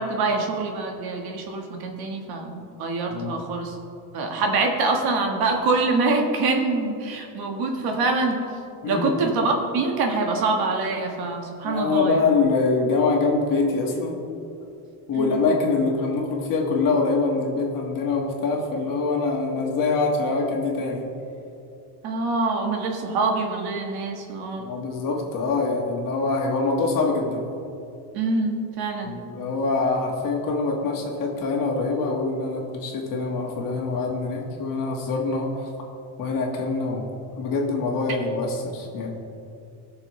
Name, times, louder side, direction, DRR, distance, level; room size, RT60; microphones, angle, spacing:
voice 1, 0.0-3.7 4.1-8.4 8.9-12.2 15.1-15.4 22.0-24.7 28.1-29.2, right 3 dB, 50° right, 2 dB, 1.6 m, -25 dB
voice 2, 3.1-3.5 8.8-9.2 11.6-14.2 15.1-21.0 24.6-27.4 29.0-35.7 36.2-37.1 37.3-39.1, left 3 dB, 45° left, -1 dB, 1.9 m, -24 dB
19.5 x 6.6 x 3.2 m, 2.6 s
cardioid pair, 160°, 46 cm